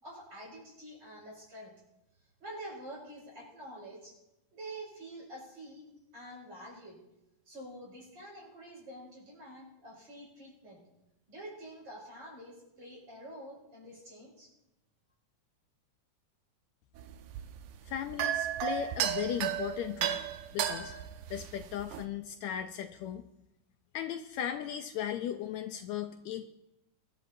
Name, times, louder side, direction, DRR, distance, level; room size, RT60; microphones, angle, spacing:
voice 1, 0.0-1.7 2.4-4.1 4.5-5.8 6.1-7.0 7.5-10.8 11.3-14.5, right 1 dB, 45° right, -3 dB, 6.8 m, -47 dB
sound 1, 17.0-22.0, right 10 dB, 90° right, 2.2 m, -34 dB
voice 2, 17.9-20.2 20.5-20.9 21.3-23.2 23.9-26.5, left 10 dB, 75° left, 7 dB, 1.8 m, -37 dB
24.0 x 12.0 x 2.7 m, 0.91 s
omnidirectional pair, 3.5 m